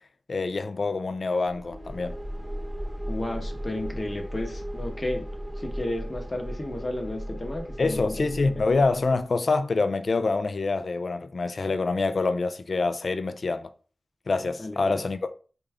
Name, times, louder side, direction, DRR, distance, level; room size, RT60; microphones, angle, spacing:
voice 1, 0.3-2.1 7.8-13.7 14.3-15.3, left 3 dB, 60° left, 0.3 m, -26 dB
sound 1, 1.5-9.2, equal, 20° right, 0.6 m, -36 dB
voice 2, 3.1-5.3 5.6-8.1 14.6-15.0, left 1 dB, 30° left, 0.8 m, -33 dB
3.7 x 2.3 x 3.4 m
wide cardioid pair, 85°, 0 cm